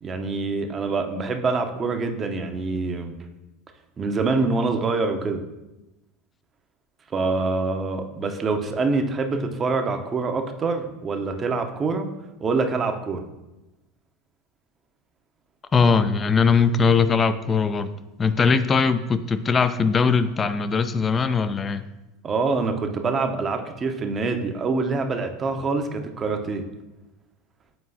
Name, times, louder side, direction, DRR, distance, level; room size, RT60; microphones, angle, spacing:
voice 1, 0.0-3.2 4.0-5.4 7.1-12.1 12.4-13.2 22.2-26.6, right 3 dB, 30° right, 6 dB, 0.7 m, -25 dB
voice 2, 15.7-17.9 18.2-21.8, left 5 dB, 25° left, 12 dB, 0.4 m, -20 dB
7.8 x 4.6 x 2.7 m, 1.0 s
hypercardioid pair, 80°, 0 cm